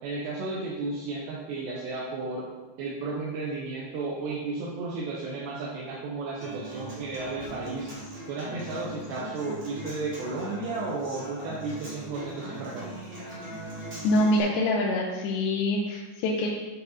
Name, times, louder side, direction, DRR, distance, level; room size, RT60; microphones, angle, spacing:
voice 1, 0.0-2.5 2.8-7.9 8.3-12.9, right 3 dB, 75° right, -5 dB, 3.0 m, -33 dB
Human voice / Acoustic guitar, 6.4-14.4, right 1 dB, 25° right, 1.2 m, -40 dB
voice 2, 14.0-16.5, left 1 dB, 75° left, -3 dB, 2.8 m, -25 dB
9.4 x 5.4 x 4.1 m, 1.3 s
omnidirectional pair, 5.3 m